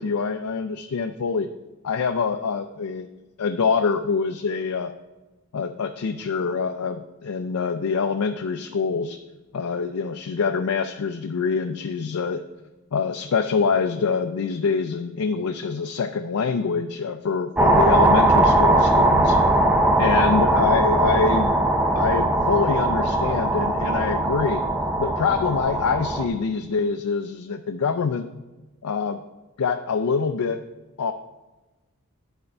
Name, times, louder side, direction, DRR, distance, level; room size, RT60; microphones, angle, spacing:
voice 1, 0.0-1.5 1.8-3.1 3.4-4.9 5.5-9.2 9.5-12.4 12.9-19.4 20.0-21.5 21.9-24.7 25.0-28.2 28.8-29.2 29.6-30.6 31.0-31.1, left 5 dB, 80° left, 6 dB, 0.4 m, -25 dB
sound 1, 17.6-26.3, right 1 dB, 5° right, 0.6 m, -20 dB
11.0 x 4.4 x 5.3 m, 1.1 s
head